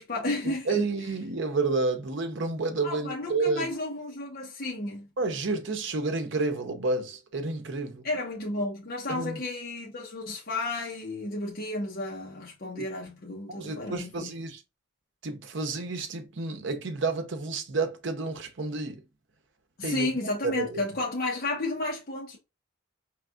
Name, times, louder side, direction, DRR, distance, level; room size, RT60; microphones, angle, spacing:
voice 1, 0.0-0.9 2.8-5.1 8.0-14.3 19.8-22.4, left 2 dB, 50° left, 1.0 m, -32 dB
voice 2, 0.7-3.7 5.2-8.1 9.1-9.4 12.8-12.9 13.5-14.6 15.2-19.0 19.8-20.1 20.4-20.8, right 3 dB, 60° right, 0.8 m, -30 dB
4.6 x 3.4 x 2.4 m
head